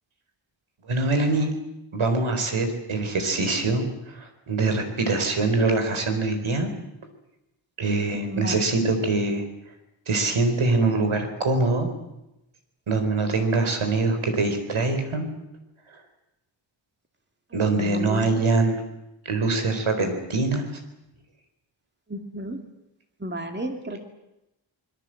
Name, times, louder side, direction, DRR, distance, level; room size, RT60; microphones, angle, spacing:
voice 1, 0.8-1.5 1.9-6.7 7.8-9.4 10.1-11.9 12.9-15.3 15.9-16.0 17.5-18.8 19.2-20.7, right 3 dB, 90° right, 6 dB, 4.5 m, -24 dB
voice 2, 8.1-8.5 17.5-18.4 22.1-22.6 23.2-24.0, right 1 dB, 20° right, 4 dB, 2.5 m, -33 dB
26.0 x 21.5 x 7.8 m, 0.90 s
wide cardioid pair, 125°, 48 cm